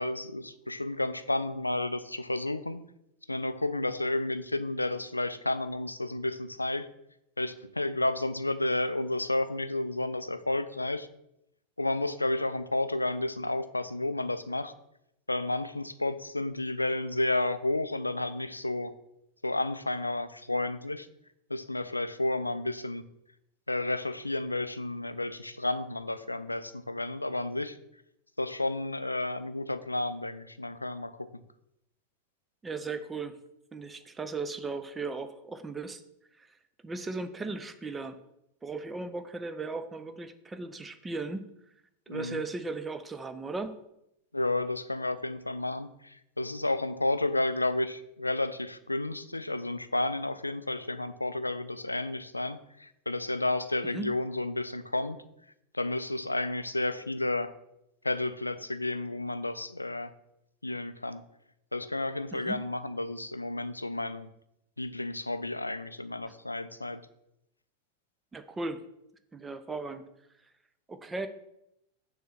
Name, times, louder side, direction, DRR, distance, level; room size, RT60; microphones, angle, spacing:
voice 1, 0.0-2.8 3.3-6.9 7.4-11.1 11.8-14.7 15.3-18.9 19.4-21.1 21.5-23.0 23.7-27.8 28.4-31.3 42.1-42.5 44.3-55.2 55.7-57.5 58.0-60.1 60.6-61.2 61.7-64.3 64.8-67.0, left 2 dB, 85° left, 13 dB, 0.3 m, -31 dB
voice 2, 32.6-33.4 33.7-36.0 36.4-36.5 36.8-38.2 38.6-41.5 42.1-43.8 53.9-54.1 62.3-62.6 68.3-68.8 69.3-70.0 70.9-71.3, right 3 dB, 15° right, 10 dB, 0.5 m, -37 dB
6.7 x 3.1 x 5.6 m, 0.82 s
figure-of-eight pair, 90°, 0 cm